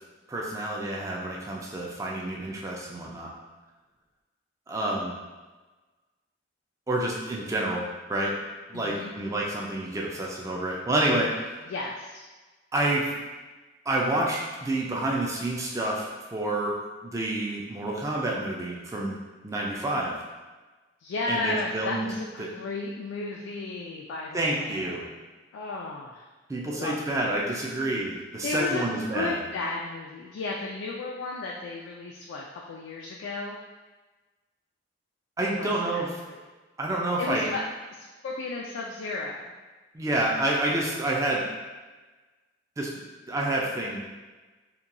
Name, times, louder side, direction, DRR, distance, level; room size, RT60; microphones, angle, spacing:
voice 1, 0.3-3.3 4.7-5.1 6.9-8.3 8.7-11.6 12.7-13.1 13.9-16.8 17.0-19.2 19.4-20.1 21.3-22.1 22.4-22.5 24.3-25.0 26.5-29.5 35.4-36.1 36.8-37.5 39.9-41.4 42.8-42.9 43.3-44.0, right 1 dB, 15° right, -3 dB, 0.3 m, -28 dB
voice 2, 8.7-9.1 11.7-12.2 21.0-25.1 25.5-26.3 26.7-27.0 28.4-28.9 29.1-33.6 35.4-36.4 37.2-37.6 37.9-39.5, left 3 dB, 80° left, -2 dB, 0.3 m, -34 dB
2.8 x 2.2 x 2.5 m, 1.2 s
head